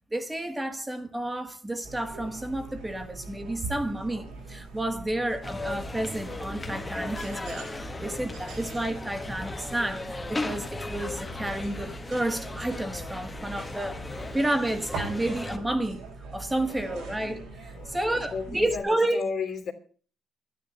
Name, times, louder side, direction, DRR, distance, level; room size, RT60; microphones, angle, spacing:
voice 1, 0.1-14.0 14.3-16.0 16.3-17.4 17.9-19.2, right 1 dB, 15° right, 1.9 m, -30 dB
sound 1, 1.8-18.8, right 3 dB, 85° right, 6.8 m, -42 dB
sound 2, 5.4-15.6, left 2 dB, 20° left, 1.5 m, -37 dB
voice 2, 8.3-8.7 13.6-13.7 14.1-14.4 16.5-17.0 17.7-19.7, left 5 dB, 60° left, 2.9 m, -36 dB
12.0 x 10.5 x 7.0 m
cardioid pair, 90°, 0 cm